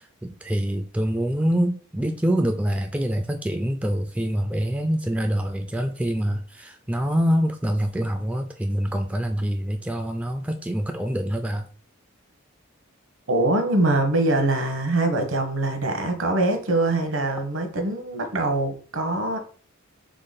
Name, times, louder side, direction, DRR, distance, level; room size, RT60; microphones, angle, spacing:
voice 1, 0.0-11.7, equal, 5° right, 0.3 m, -25 dB
voice 2, 13.3-19.4, right 2 dB, 65° right, 1.1 m, -23 dB
3.9 x 3.4 x 4.0 m
head